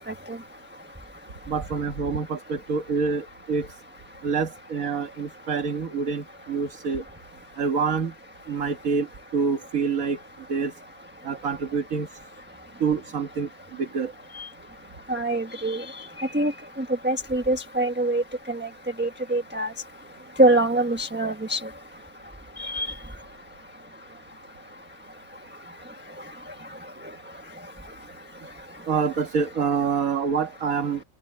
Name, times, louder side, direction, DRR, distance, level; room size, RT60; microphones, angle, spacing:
voice 1, 1.5-3.7 4.2-7.0 7.6-8.1 8.5-9.1 9.3-10.2 10.5-10.7 11.2-12.1 12.8-14.1 28.9-31.0, right 5 dB, 85° right, 1.9 m, -26 dB
voice 2, 15.1-15.8 16.2-16.5 17.0-18.7 19.0-19.7 20.4-21.6 22.6-22.9, right 1 dB, 10° right, 1.2 m, -24 dB
open air
omnidirectional pair, 1.4 m